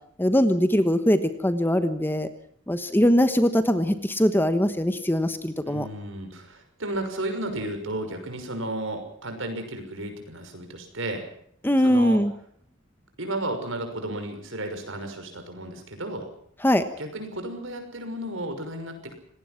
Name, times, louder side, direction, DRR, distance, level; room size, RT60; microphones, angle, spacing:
voice 1, 0.2-2.3 2.7-5.9 11.6-12.3 16.6-16.8, equal, 10° left, 10 dB, 1.2 m, -21 dB
voice 2, 5.6-11.3 11.8-12.2 13.2-16.3 17.0-19.1, right 1 dB, 65° right, 6 dB, 6.1 m, -33 dB
26.5 x 19.0 x 5.9 m, 0.64 s
head